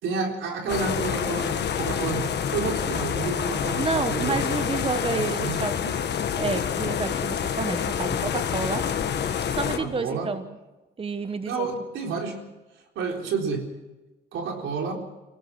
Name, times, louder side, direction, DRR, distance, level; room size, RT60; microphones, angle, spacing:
voice 1, 0.0-4.4 5.1-5.6 9.8-10.3 11.4-12.4 13.0-13.7 14.3-14.9, right 5 dB, 80° right, 2 dB, 4.2 m, -30 dB
sound 1, 0.7-9.8, left 8 dB, 60° left, 1.6 m, -27 dB
voice 2, 3.8-5.7 6.1-8.9 9.5-10.5 11.0-11.7, right 4 dB, 25° right, 9 dB, 1.2 m, -30 dB
24.5 x 17.5 x 6.1 m, 1.1 s
cardioid pair, 90°, 20 cm